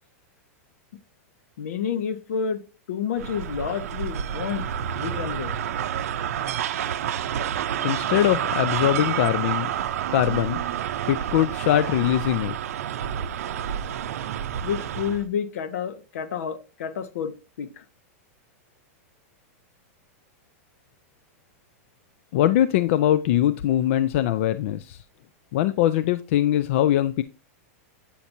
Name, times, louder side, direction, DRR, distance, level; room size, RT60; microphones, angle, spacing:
voice 1, 1.6-2.6 2.9-4.6 4.9-5.5 14.6-17.8, left 7 dB, 75° left, 0.9 m, -29 dB
sound 1, 3.2-15.3, right 9 dB, 80° right, 0.6 m, -29 dB
voice 2, 7.8-9.7 10.1-10.6 11.1-12.6 22.3-25.0 25.5-27.2, left 12 dB, 55° left, 0.4 m, -22 dB
8.4 x 5.8 x 2.7 m
supercardioid pair, 150°, 8 cm